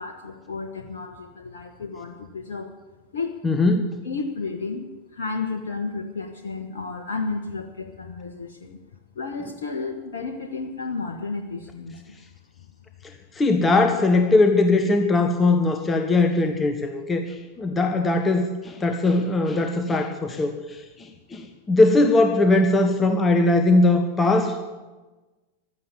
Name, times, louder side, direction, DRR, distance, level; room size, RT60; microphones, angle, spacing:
voice 1, 0.0-2.7 3.1-3.3 4.0-8.8 9.1-12.2, left 4 dB, 65° left, 4 dB, 1.3 m, -32 dB
voice 2, 3.4-4.0 13.3-24.5, left 2 dB, 15° left, 5 dB, 1.3 m, -20 dB
15.5 x 12.5 x 7.2 m, 1.2 s
figure-of-eight pair, 90°, 0 cm